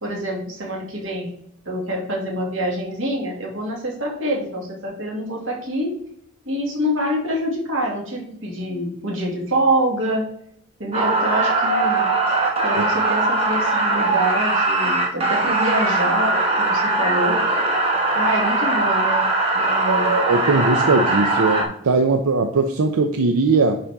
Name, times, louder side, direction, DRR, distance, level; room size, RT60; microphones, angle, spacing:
voice 1, 0.0-1.3 1.7-6.0 6.5-10.2 10.8-12.1 12.6-17.4 18.1-19.3 19.5-20.1, right 1 dB, 60° right, -1 dB, 2.2 m, -25 dB
sound 1, 10.9-21.6, right 2 dB, 25° right, 1.3 m, -20 dB
voice 2, 19.9-23.8, right 3 dB, 90° right, 5 dB, 0.6 m, -19 dB
10.0 x 4.2 x 3.5 m, 0.69 s
head